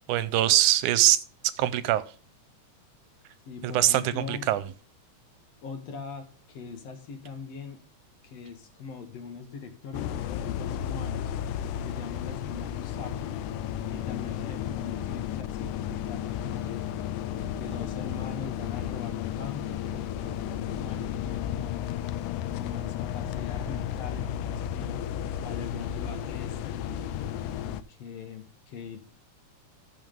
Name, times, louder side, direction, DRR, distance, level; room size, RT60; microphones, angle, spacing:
voice 1, 0.1-1.2 1.6-2.0 3.7-4.6, right 13 dB, 85° right, 2.1 m, -22 dB
voice 2, 3.5-4.5 5.6-7.8 8.2-11.3 11.7-13.4 13.9-16.9 17.6-21.8 22.6-25.0 25.4-29.0, left 5 dB, 60° left, 2.3 m, -41 dB
sound 1, 9.9-27.8, left 10 dB, 85° left, 2.1 m, -33 dB
14.5 x 5.7 x 3.6 m
omnidirectional pair, 3.5 m